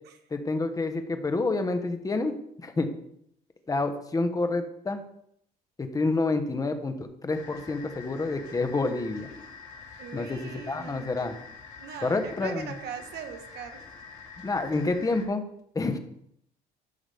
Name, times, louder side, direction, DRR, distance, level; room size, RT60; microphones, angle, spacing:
voice 1, 0.3-2.3 2.6-2.9 3.7-5.0 5.8-9.3 10.1-11.3 12.0-12.7 14.4-15.4 15.7-16.0, left 3 dB, 20° left, 7 dB, 1.1 m, -28 dB
sound 1, 7.3-15.3, left 5 dB, 70° left, 3.6 m, -46 dB
voice 2, 10.0-11.4 11.8-13.8, right 8 dB, 75° right, 6 dB, 1.3 m, -41 dB
13.5 x 6.0 x 3.5 m, 0.73 s
cardioid pair, 110°, 17 cm